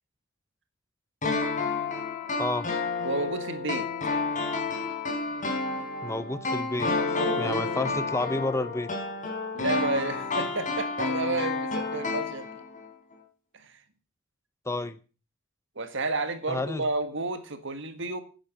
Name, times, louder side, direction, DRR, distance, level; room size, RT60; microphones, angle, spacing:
sound 1, 1.2-12.9 13.1-13.2, left 3 dB, 35° left, 4.0 m, -30 dB
voice 1, 3.0-3.9 7.1-8.0 9.5-12.6 13.5-13.8 15.8-18.2, right 2 dB, 55° right, 10 dB, 1.7 m, -31 dB
voice 2, 6.0-8.9 14.7-15.0 16.5-16.9, left 2 dB, 15° left, 14 dB, 0.6 m, -30 dB
10.5 x 10.0 x 6.5 m, 0.35 s
head